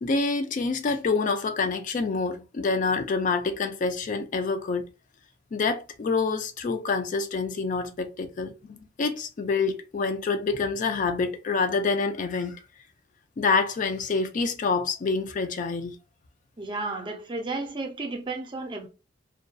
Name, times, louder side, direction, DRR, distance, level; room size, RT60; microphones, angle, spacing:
voice 1, 0.0-4.9 5.5-8.5 9.0-12.6 13.4-16.0, left 4 dB, 45° left, 0.3 m, -27 dB
voice 2, 16.6-18.9, right 3 dB, 25° right, 0.5 m, -33 dB
2.6 x 2.2 x 2.3 m
head